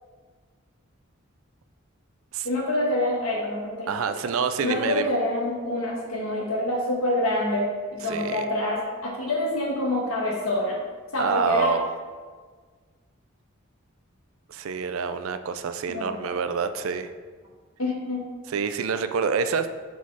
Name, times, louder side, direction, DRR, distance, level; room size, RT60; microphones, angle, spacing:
voice 1, 2.4-3.9 4.6-10.8 11.1-11.8 15.9-16.3 17.8-18.3, left 1 dB, 90° left, -2 dB, 1.5 m, -26 dB
voice 2, 3.9-5.1 8.1-8.4 11.2-11.8 14.5-17.1 18.5-19.7, right 6 dB, 75° right, 10 dB, 0.4 m, -27 dB
5.6 x 4.3 x 4.7 m, 1.5 s
head